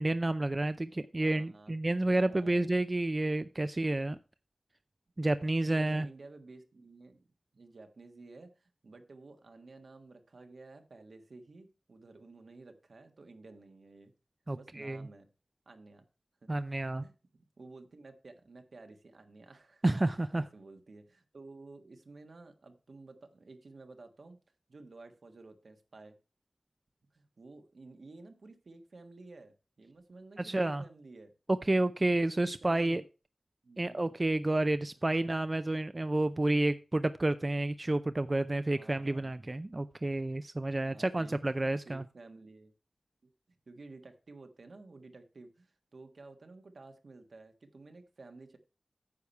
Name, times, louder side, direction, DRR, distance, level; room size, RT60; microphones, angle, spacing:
voice 1, 0.0-4.2 5.2-6.1 14.5-15.1 16.5-17.0 19.8-20.4 30.4-30.8 31.7-33.0 33.8-42.0, right 2 dB, 35° right, 12 dB, 0.5 m, -30 dB
voice 2, 1.2-1.7 2.2-2.7 5.7-7.2 7.5-14.1 14.5-15.3 15.6-16.0 16.4-19.8 20.3-24.4 24.7-26.2 27.1-31.3 32.1-33.0 33.6-34.0 35.1-35.4 38.5-39.4 40.8-42.7 43.2-43.3 43.7-48.6, right 3 dB, 75° right, 6 dB, 1.5 m, -53 dB
9.7 x 6.9 x 4.5 m, 0.32 s
wide cardioid pair, 60°, 0 cm